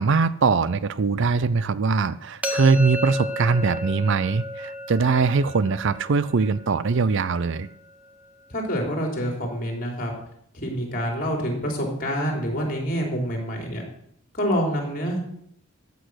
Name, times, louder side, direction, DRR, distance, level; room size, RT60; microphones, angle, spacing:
voice 1, 0.0-7.7, right 4 dB, 55° right, 0.5 m, -22 dB
sound 1, 2.4-8.3, left 1 dB, 5° right, 0.9 m, -34 dB
voice 2, 8.5-10.1 10.5-13.8 14.3-15.2, equal, 40° left, 3.8 m, -27 dB
14.5 x 8.2 x 6.4 m
head